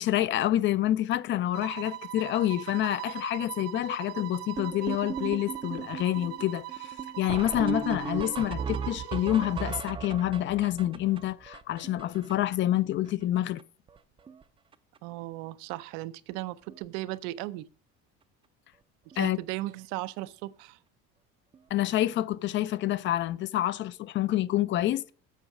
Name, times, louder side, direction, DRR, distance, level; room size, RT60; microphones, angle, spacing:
voice 1, 0.0-13.6 19.2-19.4 21.7-25.1, left 13 dB, 40° left, 0.4 m, -28 dB
sound 1, 1.5-9.9, right 16 dB, 55° right, 0.9 m, -41 dB
sound 2, 4.6-12.8 13.1-13.2 13.4-13.6 13.9-14.4 14.7-15.0 15.8-15.9 16.3-16.4 16.7-16.8 19.1-19.2 21.5-21.6, right 6 dB, 20° right, 0.5 m, -37 dB
voice 2, 15.0-17.7 19.1-20.8, right 17 dB, 80° right, 0.6 m, -36 dB
8.3 x 6.2 x 5.9 m
cardioid pair, 135°, 30 cm